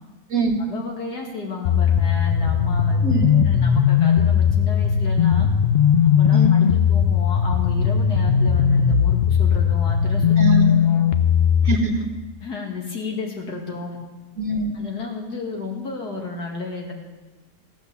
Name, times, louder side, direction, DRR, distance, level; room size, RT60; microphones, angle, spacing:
voice 1, 0.6-5.5 6.1-10.3 10.8-11.0 12.4-14.0 14.7-16.9, left 4 dB, 75° left, 0 dB, 2.6 m, -32 dB
sound 1, 1.6-11.8, left 7 dB, 55° left, 0.7 m, -18 dB
voice 2, 3.0-3.4 6.3-6.5 10.4-10.9 11.6-12.1 14.4-14.7, right 2 dB, 60° right, 4 dB, 1.9 m, -23 dB
15.0 x 7.9 x 7.0 m, 1.1 s
omnidirectional pair, 1.7 m